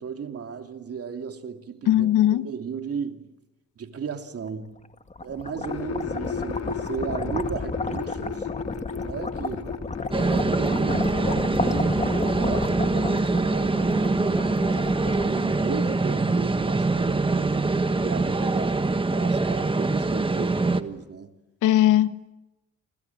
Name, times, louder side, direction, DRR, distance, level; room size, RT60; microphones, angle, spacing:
voice 1, 0.0-3.3 3.8-4.7 5.2-8.5 9.0-9.8 10.3-12.7 13.1-14.4 15.2-17.7 18.0-21.3, right 6 dB, 50° right, 2.9 m, -35 dB
voice 2, 1.9-2.5 21.6-22.3, left 13 dB, 85° left, 1.2 m, -19 dB
sound 1, 4.9-16.0, left 3 dB, 25° left, 2.1 m, -32 dB
sound 2, 5.7-14.6 14.8-15.5, left 6 dB, 60° left, 3.0 m, -36 dB
sound 3, 10.1-20.8, right 3 dB, 15° right, 1.6 m, -24 dB
27.5 x 27.0 x 7.4 m
cardioid pair, 90°, 30 cm